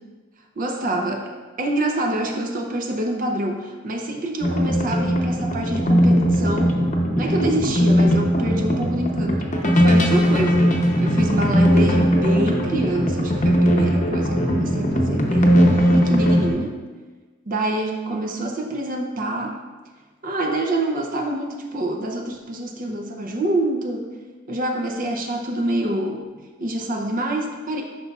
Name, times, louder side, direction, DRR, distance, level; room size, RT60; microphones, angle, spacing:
voice 1, 0.6-1.3 1.6-6.8 7.2-10.7 11.0-16.8 17.5-19.6 20.2-24.1 24.5-26.2 26.6-27.8, right 1 dB, 45° right, 1 dB, 0.6 m, -26 dB
sound 1, 4.4-16.5, equal, 35° left, 0.8 m, -19 dB
9.6 x 5.3 x 2.4 m, 1.3 s
head